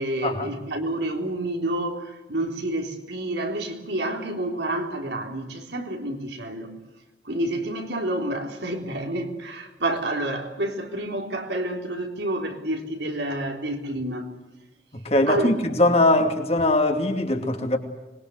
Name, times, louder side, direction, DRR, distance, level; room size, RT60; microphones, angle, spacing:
voice 1, 0.0-6.7 7.2-14.3 15.3-15.5, right 1 dB, 70° right, 3.7 m, -29 dB
voice 2, 15.0-17.8, left 2 dB, 35° left, 2.6 m, -21 dB
25.5 x 21.5 x 8.1 m
head